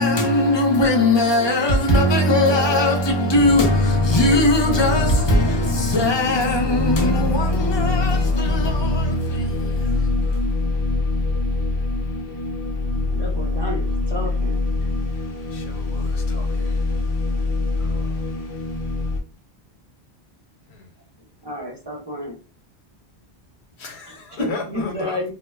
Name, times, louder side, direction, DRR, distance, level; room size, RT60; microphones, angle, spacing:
voice 1, 0.0-10.5, left 1 dB, 30° left, 0.6 m, -20 dB
sound 1, 3.3-19.2, left 2 dB, 65° left, 0.8 m, -24 dB
voice 2, 13.0-14.6 21.4-22.4 24.1-25.3, left 1 dB, 25° right, 0.8 m, -31 dB
voice 3, 15.5-16.8 17.8-18.2 20.7-20.9 23.8-25.3, left 4 dB, 90° left, 1.0 m, -36 dB
2.2 x 2.0 x 3.3 m
omnidirectional pair, 1.0 m